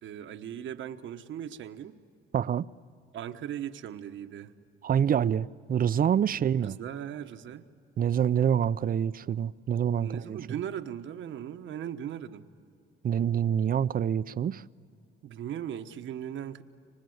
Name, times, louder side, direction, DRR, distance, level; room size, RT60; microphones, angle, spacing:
voice 1, 0.0-2.0 3.1-4.5 6.3-7.7 10.0-12.5 15.2-16.6, right 10 dB, 75° right, 1.3 m, -38 dB
voice 2, 2.3-2.7 4.8-6.8 8.0-10.5 13.0-14.6, right 8 dB, 45° right, 0.6 m, -26 dB
29.5 x 25.0 x 8.0 m
cardioid pair, 90°, 20 cm